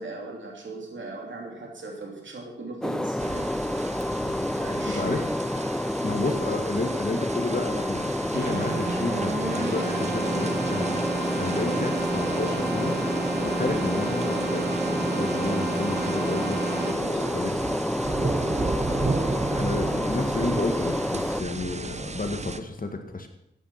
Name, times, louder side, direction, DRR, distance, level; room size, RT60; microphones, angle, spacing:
voice 1, 0.0-3.5 4.6-5.2 11.5-11.7 16.8-17.7, right 2 dB, 75° right, 0 dB, 3.1 m, -38 dB
sound 1, 2.8-21.4, left 1 dB, 5° left, 0.5 m, -29 dB
sound 2, 3.2-22.6, right 3 dB, 35° right, 0.8 m, -35 dB
voice 2, 6.0-11.0 11.4-12.9 13.4-16.8 17.3-17.5 19.5-23.3, left 3 dB, 45° left, 5 dB, 1.8 m, -31 dB
Keyboard (musical), 8.3-17.3, right 4 dB, 55° right, 1.3 m, -32 dB
14.0 x 9.3 x 5.8 m, 0.81 s
wide cardioid pair, 80°, 20 cm